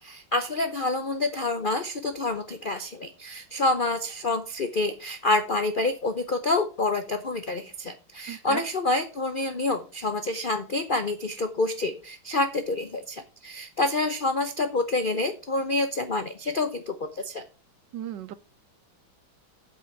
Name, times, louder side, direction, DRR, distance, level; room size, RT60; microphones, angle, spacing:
voice 1, 0.0-17.4, left 2 dB, 80° left, 0.4 m, -27 dB
voice 2, 8.3-8.6 17.9-18.3, right 11 dB, 70° right, 1.2 m, -35 dB
8.3 x 6.1 x 5.8 m
omnidirectional pair, 2.2 m